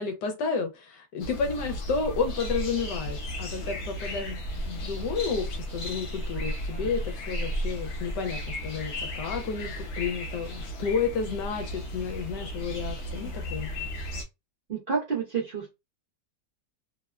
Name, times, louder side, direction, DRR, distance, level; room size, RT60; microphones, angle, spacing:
voice 1, 0.0-13.7, left 5 dB, 80° left, 1.2 m, -31 dB
sound 1, 1.2-14.2, equal, 55° left, 0.8 m, -34 dB
voice 2, 14.7-15.7, right 5 dB, 65° right, 0.5 m, -31 dB
3.3 x 2.1 x 2.3 m
omnidirectional pair, 1.9 m